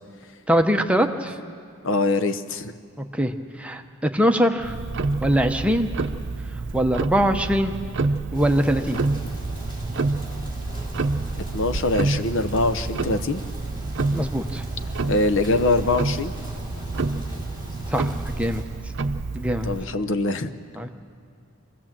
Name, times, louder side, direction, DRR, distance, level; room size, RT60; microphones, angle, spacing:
voice 1, 0.5-1.4 3.0-4.8 5.2-5.9 6.7-7.7 8.3-9.0 14.1-14.6 17.9-18.1 18.4-18.6 19.3-19.7 20.8-20.9, equal, 5° right, 5 dB, 0.8 m, -22 dB
voice 2, 1.8-2.7 11.5-13.4 15.1-16.3 19.6-20.5, left 2 dB, 60° left, 11 dB, 0.8 m, -23 dB
Tick-tock, 4.6-19.8, right 3 dB, 55° right, 0.7 m, -28 dB
sound 1, 8.3-18.6, equal, 20° left, 3.5 m, -38 dB
25.5 x 16.0 x 7.5 m, 2.3 s
head